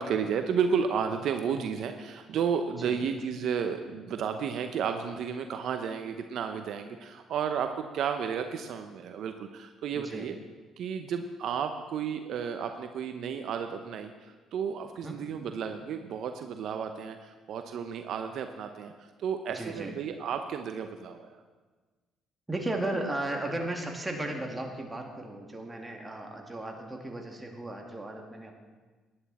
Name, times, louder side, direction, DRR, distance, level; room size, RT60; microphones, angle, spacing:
voice 1, 0.0-10.3 10.8-21.4, right 7 dB, 70° right, 7 dB, 0.8 m, -32 dB
voice 2, 9.9-10.3 15.0-15.2 19.5-19.9 22.5-28.5, right 1 dB, 15° right, 2 dB, 2.4 m, -35 dB
16.0 x 10.5 x 4.3 m, 1.3 s
supercardioid pair, 75°, 0 cm